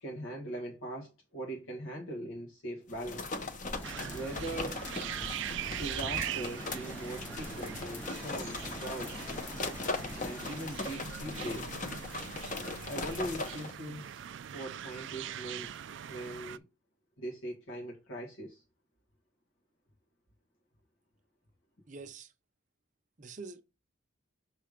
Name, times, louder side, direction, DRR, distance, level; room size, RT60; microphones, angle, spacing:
voice 1, 0.0-3.4 4.1-4.8 5.8-9.3 10.2-11.8 12.9-14.2 14.5-15.7 16.1-16.6 17.2-18.6, right 1 dB, 90° left, 1.6 m, -41 dB
sound 1, 2.9-13.7, left 3 dB, 40° left, 0.8 m, -39 dB
sound 2, 3.7-10.7, equal, 5° left, 0.4 m, -45 dB
sound 3, 3.8-16.6, right 10 dB, 65° right, 0.3 m, -42 dB
voice 2, 21.9-22.3 23.2-23.6, right 4 dB, 40° right, 0.7 m, -45 dB
6.5 x 3.3 x 5.0 m
head